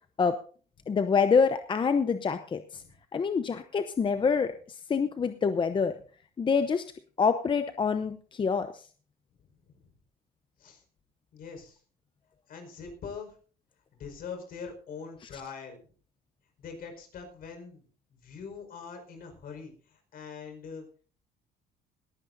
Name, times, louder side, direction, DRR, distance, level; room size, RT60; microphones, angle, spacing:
voice 1, 0.9-2.8 3.1-5.9 6.4-6.9 7.2-8.9 15.3-15.4, left 5 dB, 30° left, 9 dB, 0.8 m, -26 dB
voice 2, 9.4-9.9 10.6-10.8 11.3-11.8 12.5-13.3 13.9-15.8 16.6-17.9 18.2-20.8, left 5 dB, 60° left, 5 dB, 5.0 m, -43 dB
19.0 x 14.5 x 2.7 m, 0.41 s
cardioid pair, 110°, 17 cm